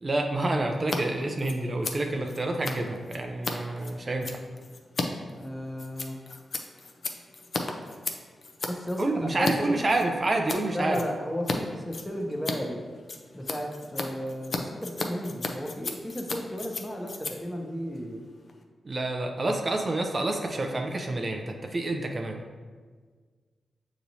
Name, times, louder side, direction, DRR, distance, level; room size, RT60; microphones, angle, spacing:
voice 1, 0.0-4.3 9.0-11.0 18.9-21.4 21.7-22.4, right 2 dB, 40° right, 2 dB, 0.5 m, -28 dB
Scissors, 0.8-1.0 1.2-9.5 9.9-10.6 10.9-11.6 11.8-18.6, left 3 dB, 55° left, 0.5 m, -35 dB
voice 2, 5.3-6.2 8.7-9.8 10.7-12.8 13.3-18.2, equal, 10° left, 1 dB, 0.8 m, -34 dB
6.6 x 3.0 x 2.7 m, 1.6 s
cardioid pair, 55°, 0 cm